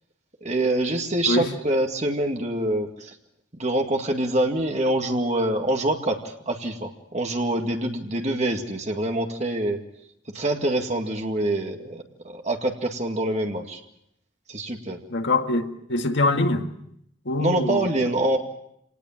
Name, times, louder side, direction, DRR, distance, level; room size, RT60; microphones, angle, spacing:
voice 1, 0.4-3.2 3.5-9.8 10.3-13.8 14.5-15.0 17.4-18.4, right 1 dB, 35° right, 2.1 m, -25 dB
voice 2, 15.1-16.7 17.3-17.9, left 2 dB, 65° left, 2.0 m, -23 dB
27.5 x 19.0 x 7.4 m
head